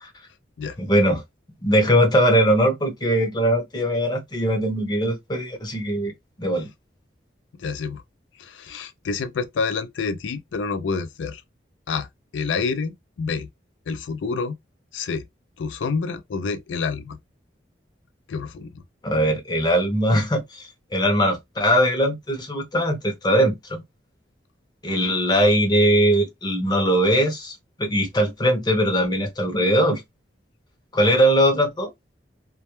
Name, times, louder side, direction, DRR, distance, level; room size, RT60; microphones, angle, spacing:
voice 1, 0.8-1.2 1.6-6.1 6.4-6.7 19.0-23.8 24.8-30.0 30.9-31.9, equal, 25° left, 0.6 m, -20 dB
voice 2, 7.6-8.0 8.4-11.4 11.9-12.1 12.3-13.5 13.9-14.6 14.9-15.2 15.6-17.2 18.3-18.8, left 5 dB, 85° left, 0.4 m, -28 dB
2.2 x 2.0 x 2.9 m
head